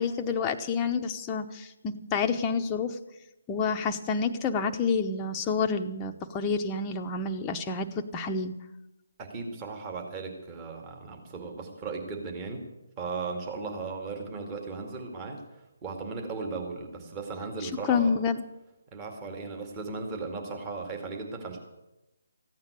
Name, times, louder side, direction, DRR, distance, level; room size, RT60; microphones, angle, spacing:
voice 1, 0.0-3.0 3.5-7.9 8.1-8.5 17.9-18.4, left 5 dB, 20° left, 4 dB, 0.9 m, -28 dB
voice 2, 9.2-12.7 13.0-15.4 15.8-18.2 18.9-21.6, right 4 dB, 20° right, 2 dB, 2.3 m, -36 dB
15.0 x 9.4 x 8.4 m, 0.96 s
figure-of-eight pair, 150°, 0 cm